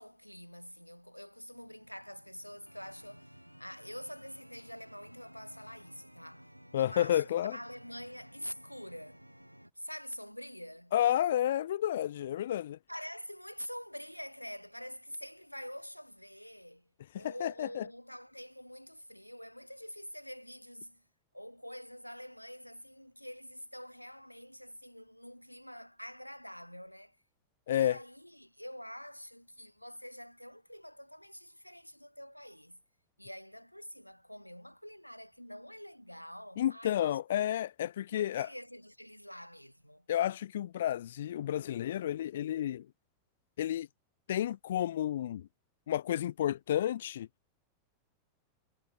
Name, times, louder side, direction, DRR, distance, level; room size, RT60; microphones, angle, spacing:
voice 1, 0.0-6.5 6.8-9.2 9.8-10.9 12.9-16.9 17.2-21.0 21.3-27.2 27.7-32.8 33.2-37.4 37.8-40.1, equal, 90° left, 3.5 m, -46 dB
sound 1, 1.5-9.7, equal, 90° right, 4.7 m, -56 dB
voice 2, 6.7-7.6 10.9-12.8 17.1-17.8 27.7-28.0 36.6-38.5 40.1-42.9 43.6-43.9 44.3-45.5 45.9-47.3, left 11 dB, 60° left, 0.3 m, -31 dB
figure-of-eight pair, 90°, 0 cm